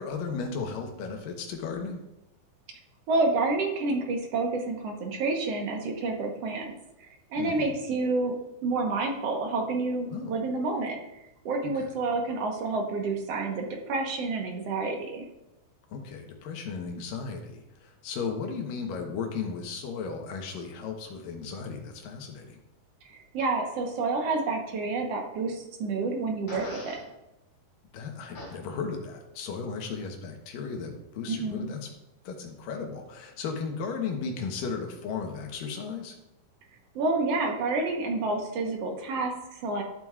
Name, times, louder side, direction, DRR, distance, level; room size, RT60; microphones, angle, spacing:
voice 1, 0.0-2.0 7.4-7.7 10.1-10.3 11.6-11.9 15.9-22.6 27.9-31.9 32.2-36.2, left 5 dB, 80° left, 3 dB, 2.8 m, -35 dB
voice 2, 3.1-6.7 7.0-8.4 8.6-11.0 11.5-15.3 23.1-27.0 31.3-31.7 37.0-39.8, right 3 dB, 60° right, 2 dB, 1.8 m, -29 dB
Fart, 26.5-27.0 28.3-28.5, left 1 dB, 55° left, 4.5 m, -40 dB
12.5 x 7.6 x 2.4 m, 0.92 s
omnidirectional pair, 3.9 m